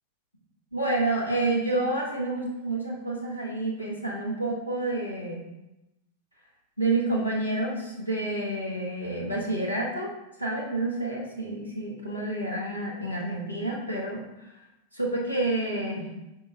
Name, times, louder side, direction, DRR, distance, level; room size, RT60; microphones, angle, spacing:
voice 1, 0.7-5.5 6.8-10.1 10.4-14.2 14.9-16.1, right 2 dB, 85° left, -4 dB, 0.8 m, -29 dB
5.2 x 2.8 x 2.4 m, 0.91 s
figure-of-eight pair, 90°, 0 cm